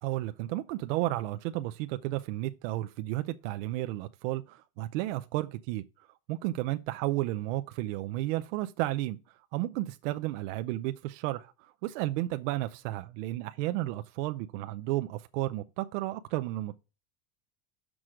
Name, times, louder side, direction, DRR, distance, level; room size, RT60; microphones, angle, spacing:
voice 1, 0.0-16.8, right 16 dB, 70° right, 0.6 m, -33 dB
6.2 x 6.2 x 4.9 m
cardioid pair, 165°, 39 cm